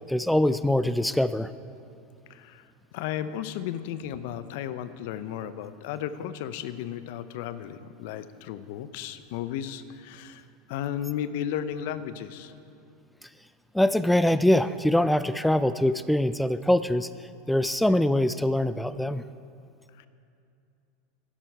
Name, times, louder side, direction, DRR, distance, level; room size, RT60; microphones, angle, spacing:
voice 1, 0.1-1.5 13.7-17.1 17.5-19.2, left 1 dB, 5° left, 13 dB, 0.3 m, -23 dB
voice 2, 2.3-2.7 2.9-10.4 10.7-12.5 20.0-20.1, left 10 dB, 65° left, 13 dB, 0.6 m, -34 dB
11.5 x 11.0 x 4.6 m, 2.5 s
hypercardioid pair, 95°, 0 cm